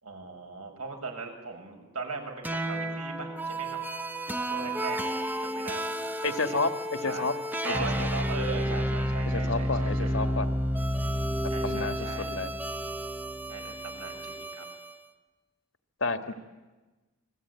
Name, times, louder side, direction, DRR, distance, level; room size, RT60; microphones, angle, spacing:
voice 1, 0.0-3.8 4.5-6.6 7.0-7.3 7.6-10.1 11.5-12.3 13.5-14.6, right 4 dB, 85° right, 2 dB, 6.3 m, -39 dB
sound 1, 2.4-15.0, equal, 10° right, 0.9 m, -31 dB
voice 2, 6.2-7.3 7.9-8.1 9.3-10.5 11.6-12.5 16.0-16.3, left 3 dB, 60° left, 9 dB, 1.7 m, -30 dB
28.5 x 22.0 x 9.6 m, 1.2 s
head